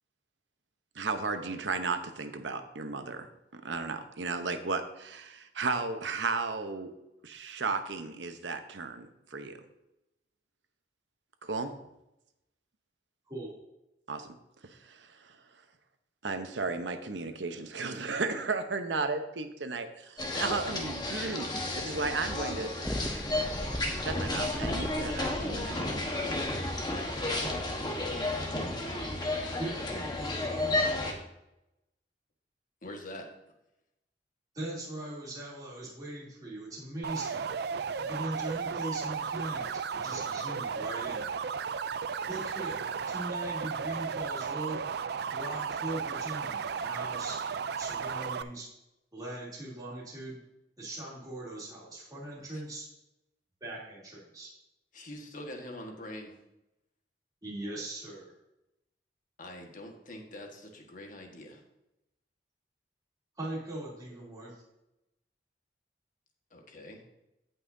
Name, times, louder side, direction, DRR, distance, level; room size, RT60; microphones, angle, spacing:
voice 1, 0.9-6.9 7.2-9.6 11.4-11.7 14.1-14.3 14.7-15.1 16.2-21.5 21.8-22.7 23.9-26.1, right 4 dB, 90° right, 8 dB, 0.9 m, -34 dB
sound 1, 20.2-31.1, left 2 dB, 25° left, 1.3 m, -32 dB
sound 2, 22.8-29.8, equal, 5° left, 0.6 m, -41 dB
voice 2, 29.6-30.8 34.5-37.4 38.0-41.3 42.3-44.8 45.3-47.4 47.8-48.7 49.1-50.4 50.8-52.9 53.6-54.5 57.4-58.3 63.4-64.6, right 1 dB, 20° right, -6 dB, 3.0 m, -40 dB
voice 3, 32.8-33.3 54.9-56.3 59.4-61.6 66.5-67.0, left 1 dB, 50° left, 2 dB, 1.6 m, -44 dB
sound 3, 37.0-48.4, right 6 dB, 65° right, 0.4 m, -34 dB
16.5 x 5.6 x 2.7 m, 0.90 s
head